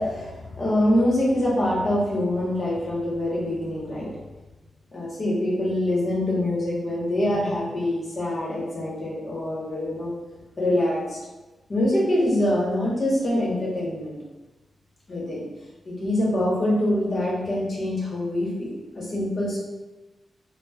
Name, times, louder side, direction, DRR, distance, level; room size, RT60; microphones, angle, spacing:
voice 1, 0.0-4.1 4.9-10.1 10.6-11.0 11.7-14.1 15.1-15.4 15.9-18.7 18.9-19.6, left 1 dB, 45° left, -5 dB, 0.9 m, -24 dB
3.0 x 2.0 x 2.3 m, 1.1 s
cardioid pair, 80°, 0 cm